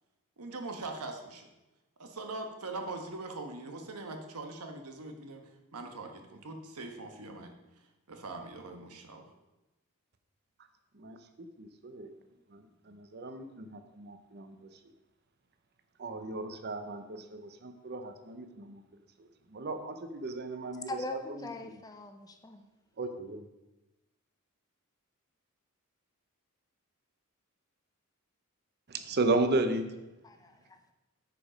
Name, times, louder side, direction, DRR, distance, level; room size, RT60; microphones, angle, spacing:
voice 1, 0.4-1.5 2.0-5.4 5.7-7.5 8.1-9.2, right 2 dB, 85° right, 4 dB, 1.2 m, -41 dB
voice 2, 11.6-12.1 12.5-14.7 16.0-18.8 19.5-21.2 21.6-21.8 23.0-23.5 28.9-29.8, right 2 dB, 45° right, 8 dB, 0.7 m, -34 dB
voice 3, 20.9-22.6 30.2-30.8, left 2 dB, 15° left, 6 dB, 0.6 m, -41 dB
9.3 x 5.0 x 5.1 m, 1.0 s
head